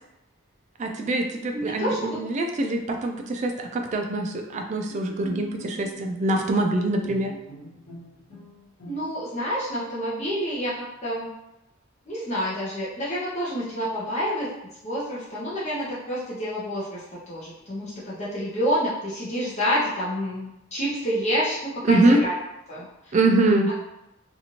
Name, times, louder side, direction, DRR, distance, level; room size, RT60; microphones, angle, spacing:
voice 1, 0.8-7.3 21.8-22.2 23.1-23.7, right 2 dB, 35° right, 3 dB, 0.3 m, -23 dB
voice 2, 1.5-2.2 8.9-11.3 12.1-14.5 14.8-22.3 22.7-23.1, equal, 35° left, -7 dB, 0.7 m, -28 dB
Bowed string instrument, 4.5-9.4, equal, 65° left, 1.3 m, -43 dB
2.9 x 2.5 x 2.8 m, 0.90 s
head